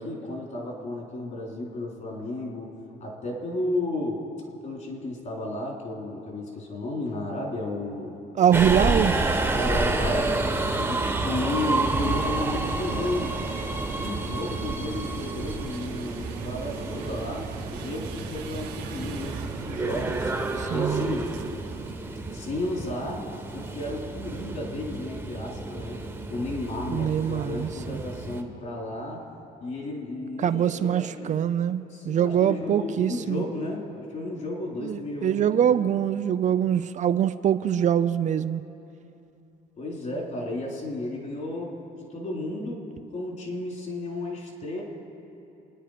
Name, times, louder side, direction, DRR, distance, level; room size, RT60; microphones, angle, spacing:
voice 1, 0.0-2.7 3.0-4.2 4.6-8.2 9.5-10.4 10.7-13.4 14.0-17.5 17.7-20.3 20.7-21.3 22.3-23.2 23.5-26.0 26.3-29.2 29.6-31.3 31.9-35.9 39.8-41.7 42.0-42.8 43.1-44.8, left 2 dB, 45° left, -1 dB, 4.2 m, -33 dB
voice 2, 8.4-9.2 20.6-21.1 26.9-28.0 30.4-33.4 34.8-38.6, right 9 dB, 45° right, 11 dB, 0.5 m, -24 dB
Subway metro underground, 8.5-28.4, right 2 dB, 10° right, 1.3 m, -30 dB
sound 1, 11.5-22.5, right 7 dB, 85° right, 1.6 m, -40 dB
27.0 x 10.0 x 5.1 m, 2.8 s
cardioid pair, 110°, 17 cm